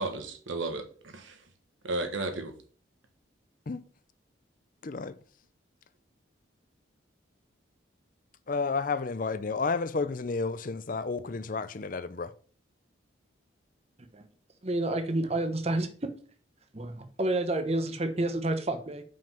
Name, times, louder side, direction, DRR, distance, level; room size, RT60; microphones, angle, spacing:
voice 1, 0.0-1.4 1.8-2.5, right 2 dB, 75° right, 1.3 m, -34 dB
voice 2, 4.8-5.1 8.5-12.3, left 4 dB, 40° left, 0.5 m, -31 dB
voice 3, 14.6-15.9 16.7-19.0, right 2 dB, 30° right, 0.9 m, -29 dB
5.6 x 5.3 x 5.8 m
head